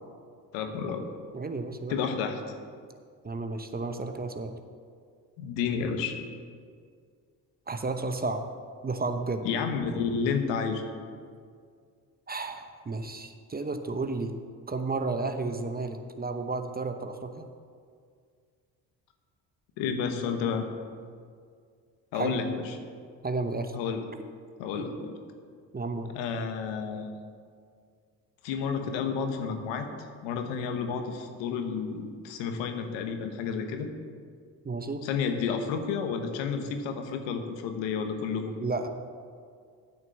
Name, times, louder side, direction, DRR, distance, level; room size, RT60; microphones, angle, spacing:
voice 1, 0.5-1.1 1.9-2.4 5.4-6.2 9.4-10.8 19.8-20.7 22.1-22.6 23.7-24.0 24.6-25.1 26.1-27.1 28.4-29.9 30.2-33.9 35.0-38.6, left 6 dB, 80° left, 6 dB, 1.2 m, -31 dB
voice 2, 1.3-1.9 3.2-4.6 7.7-8.4 8.8-9.5 12.3-14.3 14.7-17.5 22.1-22.4 23.2-23.8 24.8-24.9 25.7-26.1 34.6-35.0 38.6-38.9, right 3 dB, 20° right, 7 dB, 0.8 m, -32 dB
8.8 x 6.3 x 7.1 m, 2.1 s
supercardioid pair, 65°, 44 cm